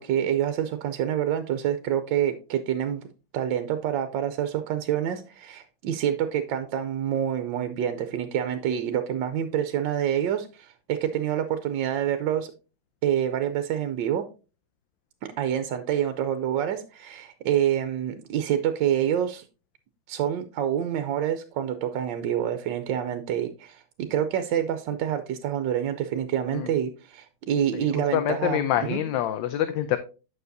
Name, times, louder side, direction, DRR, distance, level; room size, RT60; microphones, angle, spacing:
voice 1, 0.0-3.1 3.3-12.5 13.0-14.3 15.2-19.4 20.1-28.6 28.9-29.0, right 10 dB, 75° right, 8 dB, 1.3 m, -27 dB
voice 2, 27.7-30.0, left 11 dB, 75° left, 11 dB, 1.3 m, -26 dB
9.1 x 6.3 x 2.7 m, 0.33 s
omnidirectional pair, 2.2 m